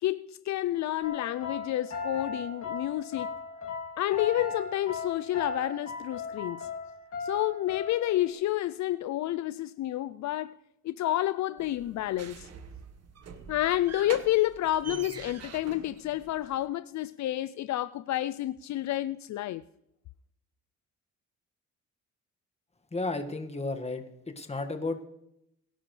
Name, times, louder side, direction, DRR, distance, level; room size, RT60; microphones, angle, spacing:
voice 1, 0.0-3.3 4.0-6.7 7.2-10.6 10.8-12.5 13.5-19.6, left 14 dB, 65° left, 0.5 m, -29 dB
sound 1, 1.0-8.3, left 4 dB, 45° left, 2.7 m, -37 dB
sound 2, 11.6-16.6, right 6 dB, 55° right, 1.5 m, -45 dB
voice 2, 22.9-25.0, left 2 dB, 20° left, 1.8 m, -33 dB
22.0 x 11.0 x 3.3 m
cardioid pair, 90°, 30 cm